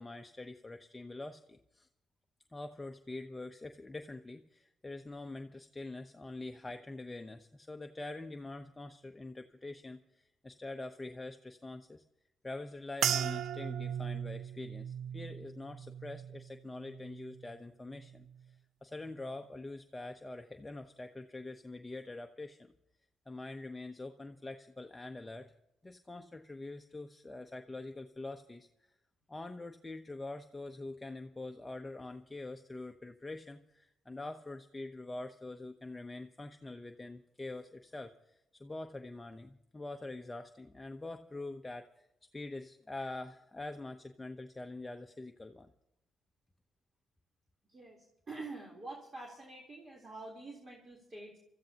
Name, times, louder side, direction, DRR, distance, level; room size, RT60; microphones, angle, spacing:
voice 1, 0.0-1.9 2.5-12.0 12.4-18.6 18.8-22.7 23.3-25.5 25.8-28.9 29.3-42.1 42.3-45.7, left 2 dB, 15° left, 5 dB, 0.8 m, -45 dB
sound 1, 13.0-17.5 17.9-18.5 19.1-19.4, right 9 dB, 80° right, 0.5 m, -38 dB
voice 2, 47.7-51.4, right 2 dB, 30° right, -2 dB, 3.6 m, -47 dB
25.5 x 14.5 x 2.9 m, 0.83 s
cardioid pair, 95°, 0 cm